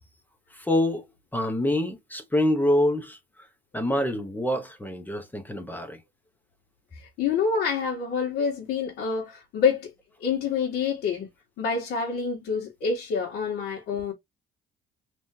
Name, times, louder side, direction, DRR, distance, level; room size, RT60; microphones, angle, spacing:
voice 1, 0.5-1.0 1.3-3.2 3.7-6.0, left 1 dB, 10° left, 1.0 m, -26 dB
voice 2, 6.9-9.9 10.2-11.3 11.6-14.1, left 5 dB, 80° left, 1.7 m, -27 dB
3.6 x 3.1 x 2.7 m
cardioid pair, 110°, 17 cm